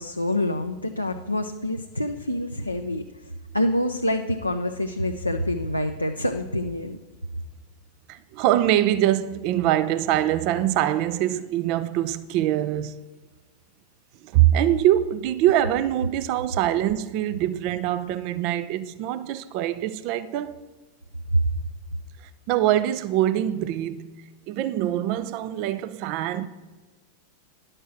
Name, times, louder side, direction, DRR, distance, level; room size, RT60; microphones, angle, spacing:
voice 1, 0.0-7.0 21.3-21.4, left 1 dB, 85° left, 0.6 m, -26 dB
voice 2, 8.1-13.0 14.2-20.6 22.5-24.1 24.5-26.5, right 12 dB, 45° right, 0.5 m, -23 dB
11.0 x 6.6 x 5.8 m
figure-of-eight pair, 90°, 0 cm